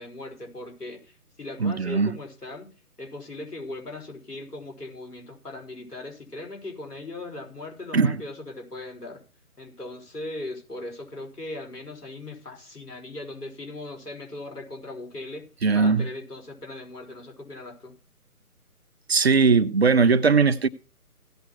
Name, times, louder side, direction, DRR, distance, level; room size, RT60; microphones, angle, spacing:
voice 1, 0.0-2.7 3.0-9.2 9.6-15.5 15.7-17.9, left 2 dB, 80° left, 5.3 m, -39 dB
voice 2, 1.6-2.1 7.9-8.2 15.6-16.1 19.1-20.7, right 5 dB, 40° right, 0.8 m, -19 dB
16.5 x 6.1 x 5.9 m
figure-of-eight pair, 155°, 46 cm